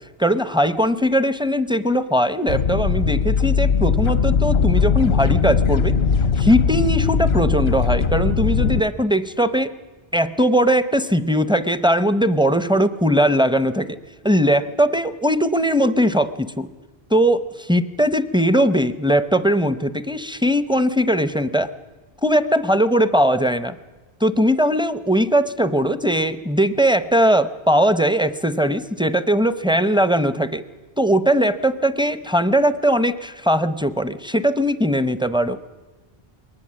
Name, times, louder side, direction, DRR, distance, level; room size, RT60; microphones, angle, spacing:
voice 1, 0.2-6.0 6.4-9.7 10.1-14.0 14.2-16.7 17.1-21.7 22.2-23.7 24.2-30.6 31.0-35.6, equal, 5° right, 13 dB, 0.5 m, -19 dB
sound 1, 2.5-8.8, left 6 dB, 80° left, 1.1 m, -19 dB
22.5 x 19.0 x 7.4 m, 1.3 s
omnidirectional pair, 1.1 m